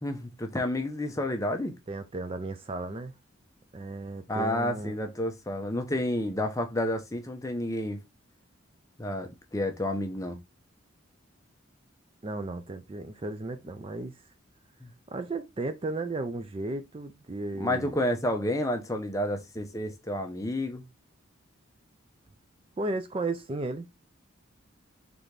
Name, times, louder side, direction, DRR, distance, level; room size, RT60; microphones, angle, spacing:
voice 1, 0.0-1.7 4.3-8.0 9.0-10.4 14.8-14.9 17.6-20.8, left 1 dB, 15° left, 0.7 m, -30 dB
voice 2, 1.9-3.1 3.7-5.0 12.2-14.1 15.1-18.0 22.8-23.9, right 2 dB, 25° right, 0.4 m, -34 dB
4.0 x 3.4 x 3.2 m
head